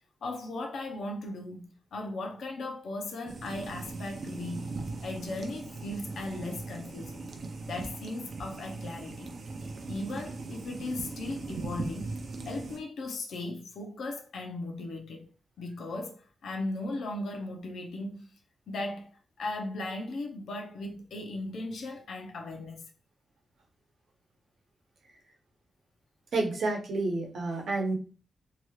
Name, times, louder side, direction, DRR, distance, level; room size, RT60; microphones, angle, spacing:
voice 1, 0.2-4.7 5.0-7.3 7.6-9.3 9.9-12.1 12.4-15.3 15.6-18.3 18.7-19.1 19.4-22.9, left 2 dB, 75° left, 0.6 m, -37 dB
sound 1, 3.2-12.8, right 3 dB, 45° right, 0.5 m, -39 dB
voice 2, 26.3-28.0, right 2 dB, 70° right, 0.9 m, -29 dB
2.8 x 2.3 x 3.0 m
wide cardioid pair, 160°, 0 cm